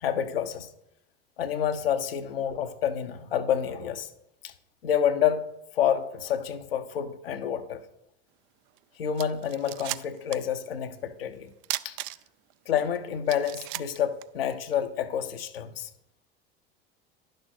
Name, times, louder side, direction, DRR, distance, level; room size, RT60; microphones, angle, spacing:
voice 1, 0.0-0.7 1.4-4.1 4.4-4.5 4.8-5.4 5.7-7.8 9.0-11.5 11.8-12.0 12.7-15.9, left 9 dB, 80° left, 7 dB, 0.8 m, -28 dB
sound 1, 8.8-8.9 9.2-10.5 10.8-10.9 11.6-12.5 12.9-13.0 13.3-14.8, right 17 dB, 55° right, 0.4 m, -35 dB
10.5 x 6.5 x 4.3 m, 0.85 s
hypercardioid pair, 70°, 29 cm